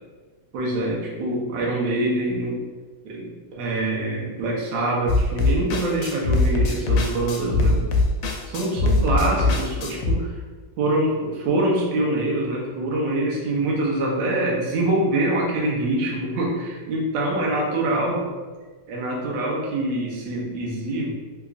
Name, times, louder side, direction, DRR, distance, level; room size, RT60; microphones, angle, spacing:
voice 1, 0.5-2.6 3.0-7.9 8.5-10.3 10.8-18.3 18.9-21.1, right 1 dB, 80° right, -3 dB, 1.5 m, -25 dB
sound 1, 5.1-10.1, left 2 dB, 75° left, 1.2 m, -21 dB
3.5 x 2.9 x 2.4 m, 1.4 s
omnidirectional pair, 2.0 m